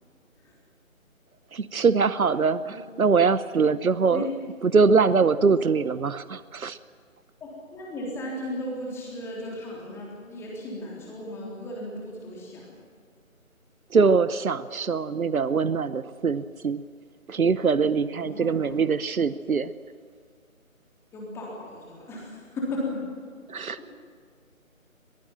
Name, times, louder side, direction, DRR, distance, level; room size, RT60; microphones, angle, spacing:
voice 1, 1.5-4.3 4.6-6.8 13.9-16.8 17.3-19.7 23.5-23.8, right 5 dB, 85° right, 15 dB, 1.0 m, -23 dB
voice 2, 7.4-12.8 18.2-18.6 21.1-23.0 23.5-23.8, left 1 dB, 5° left, -3 dB, 3.6 m, -36 dB
22.5 x 22.0 x 7.5 m, 2.1 s
figure-of-eight pair, 155°, 41 cm